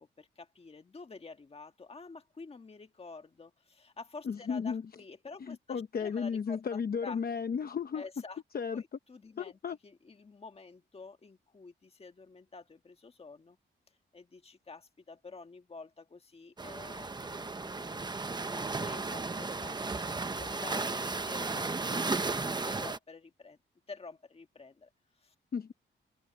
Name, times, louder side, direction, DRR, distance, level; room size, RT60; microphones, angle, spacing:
voice 1, 0.0-7.2 7.9-8.4 8.7-13.6 14.1-18.2 18.4-23.6 23.9-24.9 25.2-25.3, left 4 dB, 30° left, 1.8 m, -49 dB
voice 2, 4.2-4.8 5.4-8.0 8.5-8.8 9.4-9.8 25.5-25.7, left 6 dB, 50° left, 0.9 m, -34 dB
sound 1, 16.6-23.0, right 3 dB, 20° right, 0.9 m, -34 dB
open air
wide cardioid pair, 125°, 20 cm